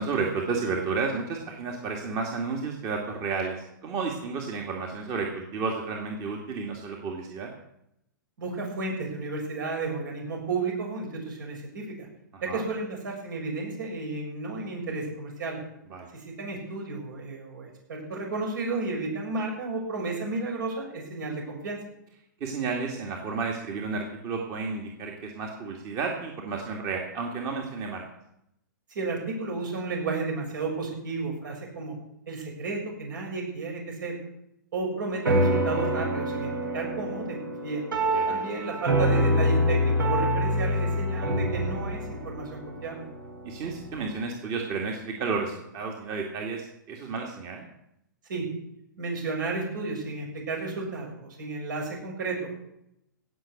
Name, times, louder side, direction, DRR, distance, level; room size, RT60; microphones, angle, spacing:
voice 1, 0.0-7.5 12.3-12.7 15.9-16.1 22.4-28.0 38.1-38.4 43.4-47.7, right 4 dB, 30° right, 1 dB, 2.1 m, -32 dB
voice 2, 8.4-12.1 12.4-15.6 16.1-21.8 28.9-31.9 32.3-34.2 34.7-37.8 38.3-43.1 48.3-48.5 49.0-52.5, right 3 dB, 70° right, 0 dB, 6.7 m, -32 dB
sound 1, 35.2-44.0, equal, 90° right, 3.3 m, -26 dB
17.0 x 6.4 x 8.3 m, 0.80 s
hypercardioid pair, 130°, 11 cm